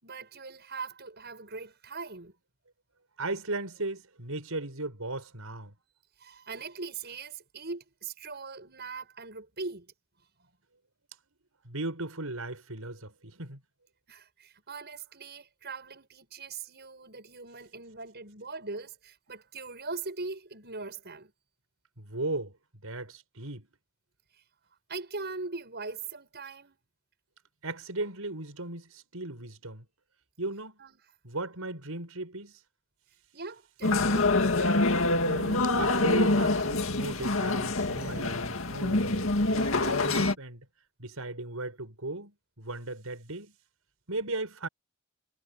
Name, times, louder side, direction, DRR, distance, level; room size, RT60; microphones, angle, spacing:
voice 1, 0.0-2.3 6.2-9.9 10.4-10.5 14.1-21.3 24.9-26.8 30.8-30.9 33.3-34.3, right 4 dB, 50° right, 7.4 m, -41 dB
voice 2, 3.2-5.7 11.6-13.6 22.0-22.5 22.8-23.7 27.6-29.9 30.4-30.8 31.2-32.6 35.3-40.7 41.0-43.5 44.1-44.7, right 2 dB, 80° right, 6.2 m, -37 dB
sound 1, 33.8-40.4, left 2 dB, 65° left, 2.3 m, -26 dB
head